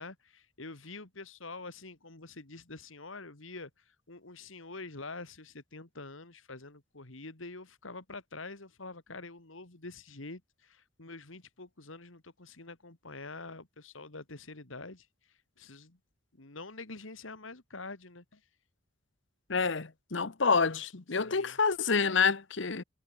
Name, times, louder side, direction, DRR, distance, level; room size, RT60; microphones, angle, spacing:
voice 1, 0.0-16.0 16.3-18.4 21.2-21.6, left 3 dB, 80° left, 2.5 m, -46 dB
voice 2, 19.5-22.8, left 5 dB, 65° left, 1.1 m, -28 dB
head